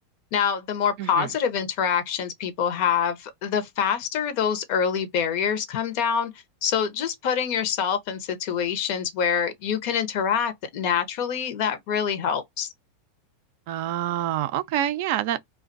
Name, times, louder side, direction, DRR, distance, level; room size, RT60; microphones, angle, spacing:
voice 1, 0.3-6.3 6.6-12.7, left 7 dB, 55° left, 0.7 m, -25 dB
voice 2, 1.0-1.3 13.7-15.4, right 12 dB, 60° right, 0.3 m, -26 dB
2.4 x 2.2 x 2.5 m
hypercardioid pair, 95°, 0 cm